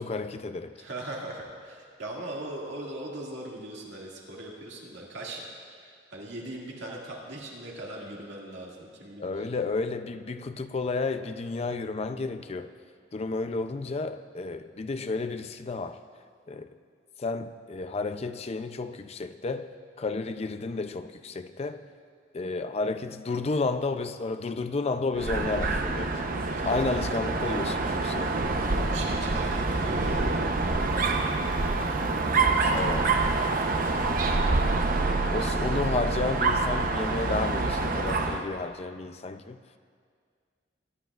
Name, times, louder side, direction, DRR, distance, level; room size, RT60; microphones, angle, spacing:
voice 1, 0.0-0.8 9.2-12.7 13.1-16.0 16.5-16.8 17.2-19.7 20.0-21.9 22.3-26.2 26.6-28.5 32.7-33.2 35.3-39.6, left 3 dB, 35° left, 9 dB, 0.4 m, -32 dB
voice 2, 0.8-5.5 5.8-9.5 26.5-27.1 28.9-32.9 35.4-36.0, right 1 dB, 75° right, -3 dB, 2.2 m, -40 dB
Dog, 25.2-38.5, right 3 dB, 50° right, 0.8 m, -26 dB
22.0 x 11.5 x 2.4 m, 2.1 s
head